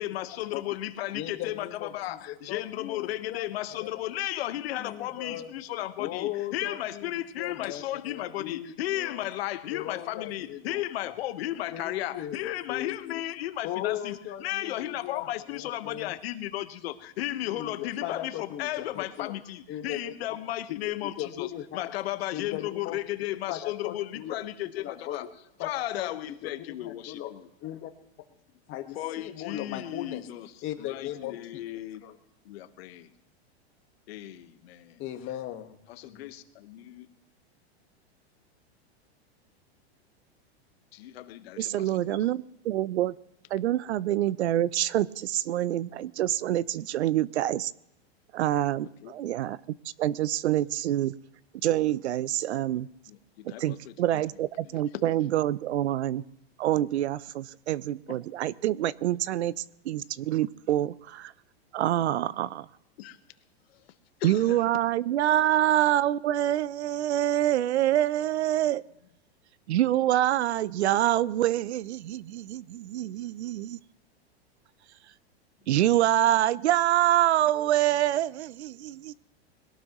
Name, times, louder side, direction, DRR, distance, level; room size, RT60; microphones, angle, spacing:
voice 1, 0.0-25.3 25.6-27.5 28.9-30.5 30.8-32.0 32.4-33.1 34.1-35.0 35.9-37.1 40.9-42.2 46.8-46.9 48.8-49.1 53.1-54.2 54.6-55.0 58.1-58.2 63.0-63.2 63.7-63.8 64.2-64.7, left 14 dB, 70° left, 10 dB, 1.4 m, -35 dB
voice 2, 1.1-3.5 3.8-3.9 4.8-5.5 6.0-9.3 9.7-11.1 11.7-12.4 12.7-13.1 13.6-16.1 17.4-19.3 19.7-20.0 20.3-20.4 21.2-21.6 22.3-23.0 23.5-24.4 24.8-25.2 25.6-25.7 26.0-26.5 26.8-27.3 27.6-27.9 28.7-30.2 30.6-31.4 32.0-32.2 35.0-35.8 36.0-36.3, left 12 dB, 40° left, 7 dB, 1.6 m, -38 dB
voice 3, 41.6-43.1 43.5-47.7 48.3-49.6 50.0-51.1 51.6-52.9 53.4-56.2 56.6-59.5 59.9-61.3 61.7-62.7 64.2-68.8 69.7-73.8 75.7-79.1, right 13 dB, 85° right, 21 dB, 0.6 m, -26 dB
21.5 x 17.5 x 3.1 m, 0.82 s
hypercardioid pair, 120°, 33 cm